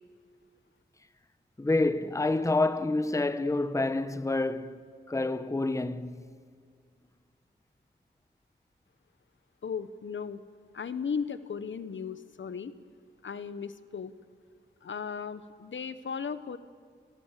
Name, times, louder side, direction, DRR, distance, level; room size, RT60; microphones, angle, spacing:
voice 1, 1.6-6.3, left 2 dB, 15° left, 0.9 m, -28 dB
voice 2, 9.6-10.4 10.7-12.7 13.2-14.1 14.8-16.6, left 6 dB, 70° left, 1.1 m, -36 dB
29.5 x 20.0 x 7.5 m
wide cardioid pair, 100°, 20 cm